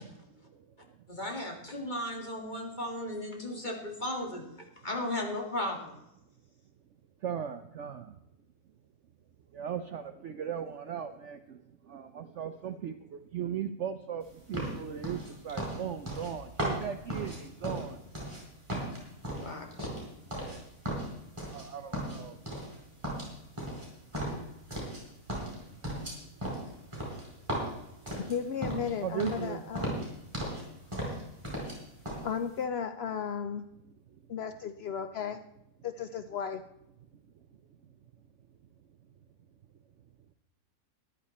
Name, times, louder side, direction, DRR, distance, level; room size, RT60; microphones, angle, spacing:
voice 1, 0.1-1.1 1.8-1.9 2.2-2.3 7.2-8.2 9.5-18.0 20.3-20.7 21.3-22.4 25.7-26.3 29.0-29.9 34.1-34.3 37.1-37.9, right 8 dB, 60° right, 9 dB, 0.8 m, -39 dB
voice 2, 1.1-4.4 4.8-6.0 19.3-19.9, left 1 dB, 30° left, 2 dB, 2.2 m, -35 dB
sound 1, 14.5-18.4 18.7-20.6 20.8-21.6 21.9-22.8 23.0-25.0 25.3-28.9 29.2-29.5 29.7-30.6 30.9-31.8 32.0-32.2, right 1 dB, 15° right, 4.7 m, -36 dB
voice 3, 28.2-30.1 32.2-33.6 34.3-35.4 35.8-36.6, left 7 dB, 75° left, 10 dB, 0.5 m, -35 dB
14.0 x 11.0 x 4.2 m, 0.85 s
omnidirectional pair, 1.7 m